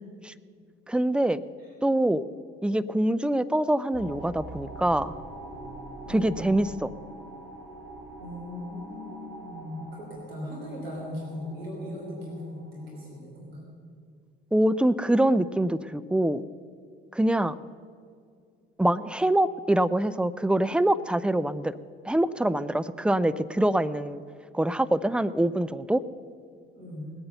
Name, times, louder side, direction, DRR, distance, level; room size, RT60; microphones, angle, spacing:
voice 1, 0.9-1.4 1.8-2.2 2.6-5.1 6.1-6.9 14.5-16.4 17.1-17.6 18.8-21.8 22.0-24.2 24.5-26.0, right 1 dB, 5° right, 15 dB, 0.5 m, -24 dB
sound 1, 3.9-13.2, right 2 dB, 50° right, 4.7 m, -44 dB
voice 2, 6.0-6.3 8.2-13.6 26.7-27.1, left 1 dB, 90° right, -3 dB, 3.2 m, -38 dB
19.0 x 8.7 x 6.8 m, 2.2 s
hypercardioid pair, 50°, 29 cm